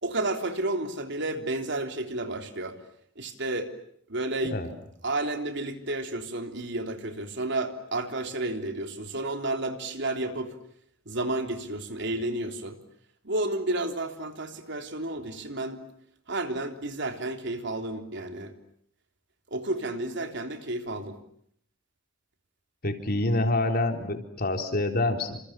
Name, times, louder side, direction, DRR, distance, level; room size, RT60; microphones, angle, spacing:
voice 1, 0.0-2.8 3.2-3.7 4.1-4.6 5.0-10.6 11.1-12.8 13.2-15.8 16.3-18.5 19.5-21.2, right 2 dB, 65° right, 6 dB, 3.5 m, -31 dB
voice 2, 22.8-25.4, left 2 dB, 50° left, 5 dB, 3.9 m, -27 dB
29.0 x 27.5 x 7.5 m, 0.66 s
head